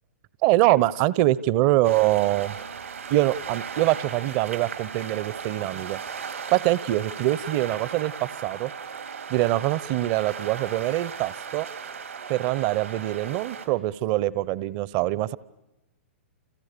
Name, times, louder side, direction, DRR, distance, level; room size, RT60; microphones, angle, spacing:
voice 1, 0.4-2.5 3.1-6.0 6.5-8.7 9.3-11.7 12.3-15.4, right 16 dB, 40° right, 20 dB, 1.0 m, -24 dB
sound 1, 1.8-13.7, right 6 dB, 80° right, 3.9 m, -37 dB
30.0 x 28.5 x 6.9 m, 1.0 s
hypercardioid pair, 120°, 7 cm